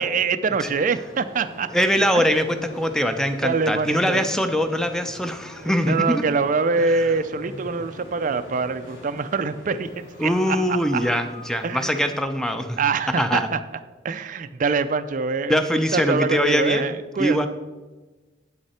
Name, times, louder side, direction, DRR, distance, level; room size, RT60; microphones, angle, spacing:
voice 1, 0.0-1.7 2.1-2.3 3.4-4.3 5.6-11.0 11.6-12.0 12.8-13.6 14.0-17.5, right 4 dB, 45° right, 11 dB, 0.4 m, -25 dB
sound 1, 0.8-12.2, left 1 dB, 75° left, 2.7 m, -43 dB
voice 2, 1.7-6.2 10.2-12.8 13.2-13.5 15.5-16.9 17.2-17.5, equal, 5° left, 8 dB, 0.6 m, -22 dB
9.1 x 8.0 x 4.3 m, 1.2 s
head